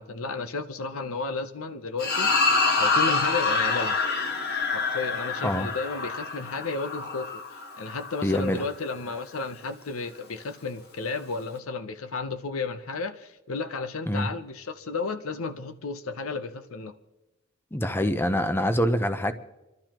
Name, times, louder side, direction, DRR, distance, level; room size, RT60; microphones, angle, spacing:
voice 1, 0.0-4.0 4.7-7.4 7.8-16.9, left 4 dB, 85° left, 10 dB, 0.8 m, -33 dB
sound 1, 2.0-8.5, left 4 dB, 50° left, 1.4 m, -26 dB
voice 2, 8.2-8.6 14.1-14.3 17.7-19.3, equal, 10° left, 9 dB, 0.7 m, -25 dB
28.5 x 12.0 x 3.0 m, 1.0 s
head